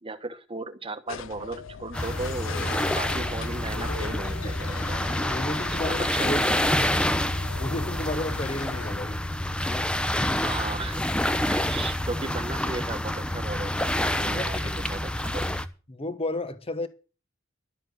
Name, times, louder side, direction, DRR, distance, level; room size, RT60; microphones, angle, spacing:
voice 1, 0.0-5.1 5.9-6.7 10.4-11.0 11.5-15.6, right 2 dB, 25° right, 1.2 m, -36 dB
sound 1, 1.1-8.9, left 5 dB, 75° left, 0.6 m, -40 dB
sound 2, 1.9-15.7, left 1 dB, 5° left, 0.8 m, -27 dB
voice 2, 5.3-6.4 7.5-9.2 10.0-10.2 14.3-14.8 15.9-16.9, left 2 dB, 30° left, 1.2 m, -32 dB
12.5 x 7.6 x 7.9 m
head